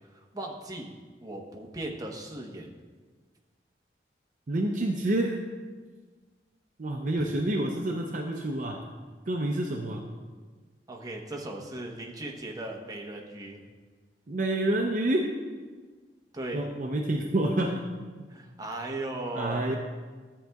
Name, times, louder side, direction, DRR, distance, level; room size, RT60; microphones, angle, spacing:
voice 1, 0.1-0.9 1.2-2.7 7.2-7.3 10.9-13.6 16.3-16.7 18.3-19.8, right 1 dB, 20° right, -1 dB, 0.9 m, -37 dB
voice 2, 4.5-5.4 6.8-8.8 9.3-10.0 14.3-15.3 16.5-17.9 19.3-19.7, right 1 dB, 45° right, 2 dB, 0.5 m, -28 dB
13.0 x 7.8 x 2.3 m, 1.4 s
head